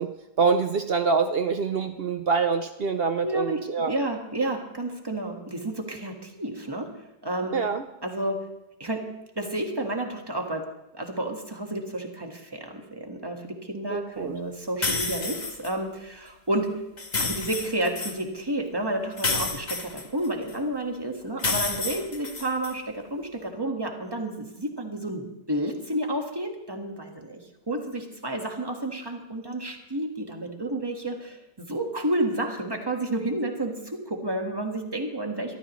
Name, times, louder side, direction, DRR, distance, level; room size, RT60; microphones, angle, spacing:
voice 1, 0.0-3.9 7.5-7.8 13.9-14.4, right 5 dB, 70° right, 8 dB, 0.5 m, -25 dB
voice 2, 3.2-3.6 3.9-6.9 7.2-7.5 8.0-8.4 8.8-9.0 9.3-10.6 10.9-16.7 17.2-35.6, right 1 dB, 15° right, 3 dB, 1.5 m, -31 dB
sound 1, 14.8-15.7 17.0-18.2 19.2-20.5 21.4-22.7, left 3 dB, 30° left, 1.1 m, -29 dB
22.0 x 13.5 x 3.2 m, 0.92 s
omnidirectional pair, 1.8 m